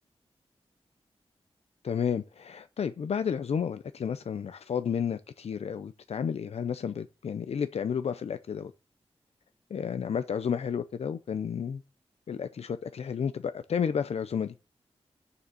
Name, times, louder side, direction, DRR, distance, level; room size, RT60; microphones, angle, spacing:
voice 1, 1.8-8.7 9.7-11.8 12.3-14.5, left 7 dB, 75° left, 0.5 m, -31 dB
7.0 x 6.7 x 7.3 m
wide cardioid pair, 145°, 11 cm